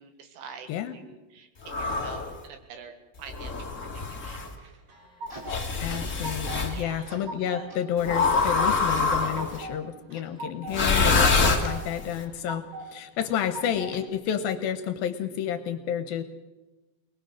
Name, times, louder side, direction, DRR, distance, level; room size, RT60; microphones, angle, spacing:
voice 1, 0.0-3.7 4.2-4.4 6.6-7.1 7.4-7.7, right 6 dB, 75° right, 7 dB, 3.6 m, -46 dB
sound 1, 1.6-2.3 3.3-4.5 5.5-6.7 8.0-9.6 10.7-12.1, left 4 dB, 40° left, 1.0 m, -25 dB
sound 2, 4.6-5.6 5.9-6.7 7.0-7.7 8.0-8.7 9.1-9.8 10.1-10.8 11.1-11.8 12.2-12.9 13.2-14.0, right 2 dB, 50° right, 2.0 m, -39 dB
sound 3, 4.9-6.8 7.1-7.3 7.7-7.8 8.3-8.4 8.9-9.0 9.5-9.6 10.1-10.2 10.8-10.9, equal, 10° right, 4.7 m, -45 dB
voice 2, 5.8-16.2, left 9 dB, 75° left, 10 dB, 2.5 m, -30 dB
22.5 x 20.0 x 6.3 m, 1.1 s
omnidirectional pair, 4.7 m